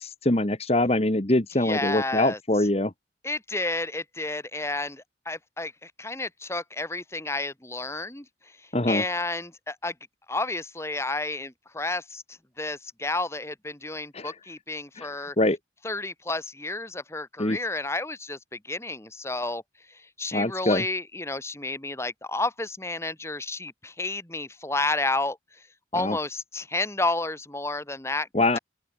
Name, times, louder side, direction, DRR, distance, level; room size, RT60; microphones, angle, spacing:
voice 1, 0.0-2.9 8.7-9.0 14.1-14.3 15.0-15.1 15.4-15.6 17.4-17.6 20.3-20.8 25.9-26.2 28.3-28.6, left 1 dB, 35° left, 1.6 m, -24 dB
voice 2, 1.6-2.4 3.2-8.3 8.9-9.9 10.3-12.2 12.6-15.4 15.8-19.6 19.9-25.4 25.9-28.3 28.5-28.6, left 2 dB, 15° left, 2.5 m, -31 dB
open air
head